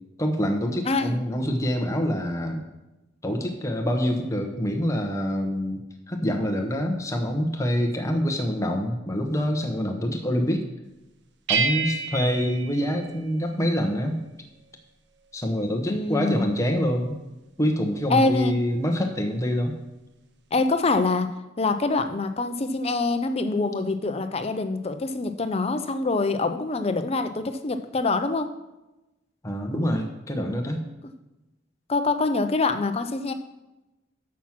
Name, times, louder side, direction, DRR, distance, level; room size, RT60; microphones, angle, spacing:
voice 1, 0.2-2.6 3.2-10.7 11.5-14.2 15.3-17.2 17.6-19.7 29.4-30.8, equal, 15° left, 3 dB, 1.0 m, -26 dB
voice 2, 0.8-1.2 15.9-16.5 18.1-18.5 20.5-28.5 31.9-33.3, left 3 dB, 35° left, 9 dB, 0.6 m, -25 dB
sound 1, 11.5-13.7, right 5 dB, 65° right, 0.7 m, -29 dB
7.3 x 6.0 x 5.9 m, 1.0 s
head